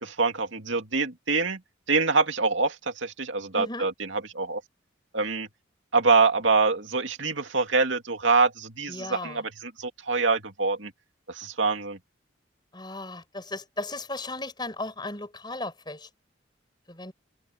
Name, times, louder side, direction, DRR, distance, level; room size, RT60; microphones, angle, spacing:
voice 1, 0.0-1.6 1.9-2.7 3.0-4.6 5.1-5.5 5.9-10.9 11.3-12.0, right 4 dB, 80° right, 2.4 m, -25 dB
voice 2, 3.5-3.9 8.9-9.4 12.7-16.1 16.9-17.1, left 2 dB, 20° left, 6.0 m, -36 dB
head